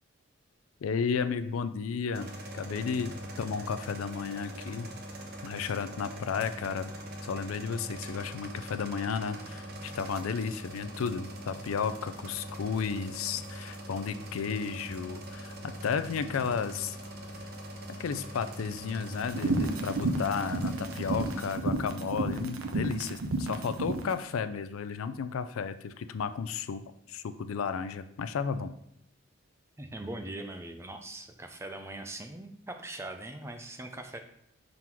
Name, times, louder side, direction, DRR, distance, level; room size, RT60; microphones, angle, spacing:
voice 1, 0.8-4.9 5.4-6.9 7.2-17.0 18.0-28.7, left 6 dB, 90° left, 11 dB, 0.4 m, -33 dB
sound 1, 2.1-21.5, right 1 dB, 50° right, 0.9 m, -42 dB
sound 2, 19.2-24.1, right 2 dB, 85° right, 0.7 m, -31 dB
voice 2, 29.8-34.2, right 1 dB, 15° right, 5 dB, 0.4 m, -41 dB
5.9 x 3.8 x 4.5 m, 0.75 s
head